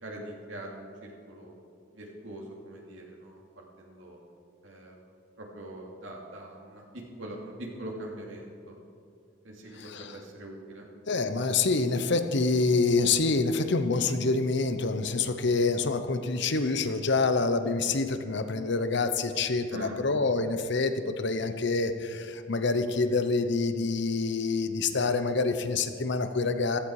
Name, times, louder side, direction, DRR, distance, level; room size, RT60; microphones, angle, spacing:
voice 1, 0.0-1.5 1.9-4.2 4.6-5.0 5.4-8.7 9.4-10.8 19.7-19.9, right 1 dB, 75° right, -1 dB, 2.8 m, -43 dB
voice 2, 9.8-10.2 11.1-26.8, left 3 dB, 60° left, 9 dB, 0.9 m, -27 dB
15.5 x 14.0 x 4.9 m, 2.4 s
head